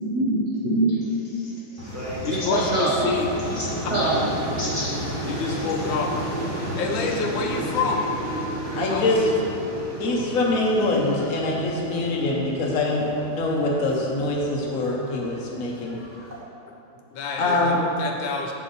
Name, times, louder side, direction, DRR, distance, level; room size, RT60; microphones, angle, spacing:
voice 1, 0.1-1.0 1.3-1.5 1.8-3.1 3.5-3.7 3.9-4.3 4.6-4.9 5.3-5.4, right 2 dB, 75° right, -7 dB, 0.6 m, -25 dB
sound 1, 1.8-16.4, equal, 10° right, 1.2 m, -33 dB
voice 2, 2.2-3.3 3.8-4.1 5.3-6.1 6.8-8.1 8.9-9.3 17.1-18.5, left 5 dB, 75° left, 2 dB, 1.4 m, -27 dB
voice 3, 8.8-9.3 10.0-13.1 13.3-16.0 17.4-17.8, left 2 dB, 55° left, -2 dB, 1.1 m, -24 dB
6.7 x 5.6 x 4.0 m, 2.6 s
omnidirectional pair, 2.3 m